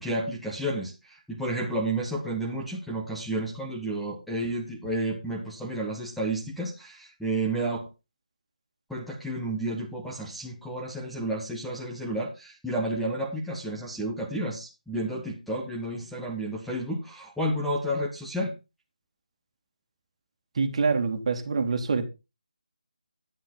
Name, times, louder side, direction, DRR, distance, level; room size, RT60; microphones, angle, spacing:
voice 1, 0.0-7.9 8.9-18.5, right 1 dB, ahead, 1.5 m, -31 dB
voice 2, 20.6-22.1, right 4 dB, 45° right, 2.2 m, -25 dB
10.5 x 10.5 x 3.8 m
figure-of-eight pair, 160°, 4 cm